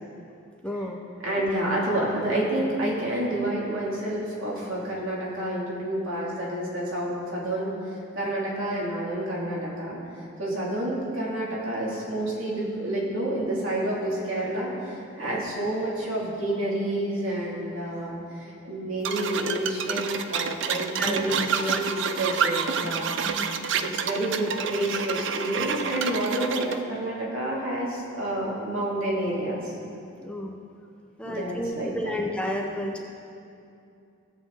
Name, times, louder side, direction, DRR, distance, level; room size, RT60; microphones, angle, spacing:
voice 1, 0.6-1.0 1.4-1.5 15.3-15.4 21.0-21.8 23.2-23.5 30.2-30.6 31.2-33.0, left 1 dB, 5° left, 0 dB, 0.6 m, -31 dB
voice 2, 1.2-10.0 10.4-23.1 23.8-29.7 31.2-32.2, right 1 dB, 75° right, -5 dB, 2.8 m, -29 dB
sound 1, 19.0-26.8, right 6 dB, 60° right, 0.5 m, -28 dB
16.5 x 7.7 x 3.9 m, 2.6 s
head